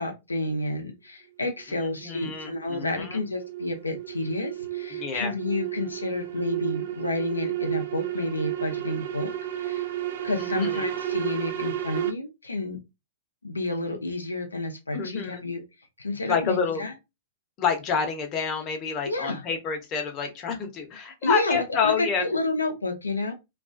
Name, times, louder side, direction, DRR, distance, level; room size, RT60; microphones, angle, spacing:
voice 1, 0.0-9.9 10.2-12.8 13.4-15.6 16.0-16.9 19.1-19.4 21.2-23.3, left 2 dB, 90° left, 3 dB, 0.5 m, -30 dB
sound 1, 1.6-12.1, right 12 dB, 60° right, 0.3 m, -32 dB
voice 2, 1.7-3.2 4.9-5.3 10.4-10.9 14.9-15.5 16.2-16.8 17.6-22.2, left 6 dB, 35° left, 4 dB, 0.8 m, -28 dB
2.3 x 2.2 x 2.4 m, 0.24 s
figure-of-eight pair, 110°, 0 cm